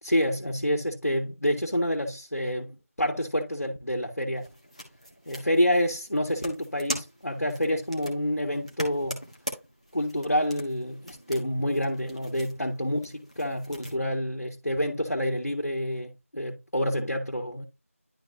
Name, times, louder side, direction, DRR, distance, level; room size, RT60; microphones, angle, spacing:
voice 1, 0.0-4.5 5.3-9.2 9.9-17.6, equal, 85° left, 1.7 m, -28 dB
sound 1, 4.4-14.0, equal, 25° left, 1.4 m, -41 dB
11.5 x 3.8 x 2.7 m
figure-of-eight pair, 180°, 8 cm